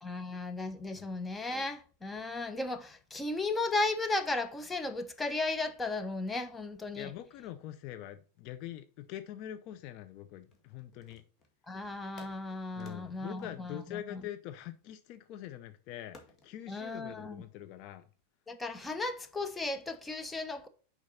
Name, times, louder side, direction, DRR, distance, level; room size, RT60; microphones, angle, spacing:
voice 1, 0.0-7.1 11.7-14.0 16.7-17.4 18.5-20.7, left 2 dB, 10° left, 0.9 m, -35 dB
voice 2, 6.9-11.2 12.7-16.2 16.4-18.1, left 12 dB, 50° left, 0.6 m, -44 dB
sound 1, 10.5-11.6 12.2-14.7 16.1-16.6, left 3 dB, 30° left, 1.8 m, -57 dB
6.4 x 5.2 x 4.1 m
hypercardioid pair, 95°, 0 cm